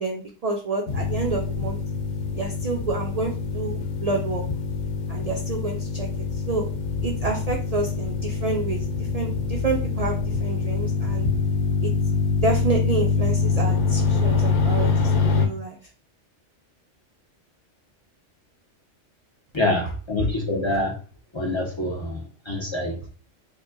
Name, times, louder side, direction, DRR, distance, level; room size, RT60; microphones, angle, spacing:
voice 1, 0.0-1.8 2.3-4.4 5.1-6.7 7.0-8.9 9.1-11.3 11.8-11.9 12.4-15.8, right 3 dB, 70° right, 1 dB, 0.3 m, -29 dB
sound 1, 0.9-15.5, left 5 dB, 70° left, 0.9 m, -25 dB
voice 2, 19.5-20.9 21.3-23.1, left 2 dB, 35° left, -2 dB, 0.5 m, -26 dB
4.6 x 2.1 x 2.5 m, 0.39 s
omnidirectional pair, 1.3 m